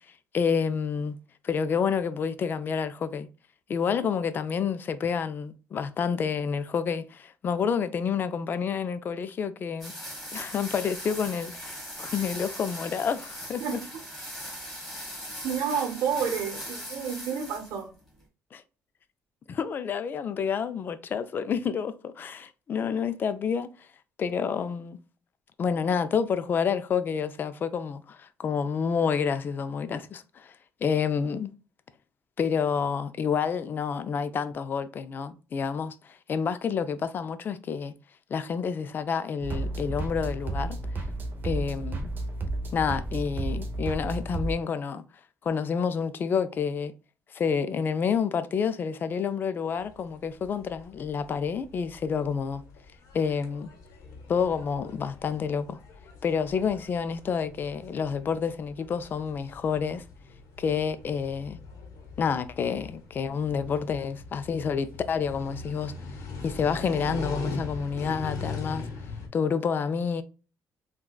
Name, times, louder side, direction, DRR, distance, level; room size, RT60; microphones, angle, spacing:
voice 1, 0.3-1.2 1.4-3.3 3.7-9.9 10.3-13.8 18.5-18.6 19.5-23.7 24.2-25.0 25.6-30.5 30.8-31.5 32.4-37.9 38.3-40.8 41.4-42.1 42.7-45.0 45.4-46.9 47.3-52.6 53.1-53.7 54.3-55.8 56.2-60.0 60.6-61.6 62.2-65.9 66.4-68.9 69.3-70.2, left 6 dB, 35° left, 0.3 m, -29 dB
sound 1, 9.8-17.8, equal, ahead, 1.5 m, -39 dB
voice 2, 15.4-17.9, right 7 dB, 75° right, 0.9 m, -30 dB
sound 2, 39.4-44.6, right 2 dB, 35° right, 0.7 m, -32 dB
sound 3, 49.8-69.3, left 3 dB, 85° left, 0.9 m, -41 dB
3.7 x 2.2 x 2.3 m
cardioid pair, 135°, 6 cm